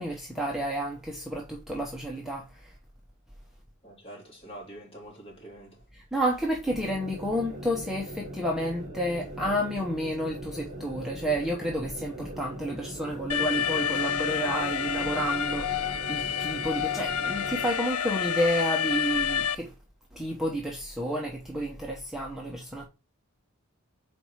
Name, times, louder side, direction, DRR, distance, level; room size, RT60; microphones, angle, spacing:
voice 1, 0.0-2.7 5.9-19.7 20.1-22.9, equal, ahead, 0.9 m, -30 dB
voice 2, 3.8-5.8, right 1 dB, 25° left, 2.7 m, -45 dB
sound 1, 6.7-17.7, right 1 dB, 35° right, 2.4 m, -41 dB
Alarm, 13.3-19.5, left 8 dB, 90° left, 0.5 m, -29 dB
5.9 x 4.6 x 4.6 m
head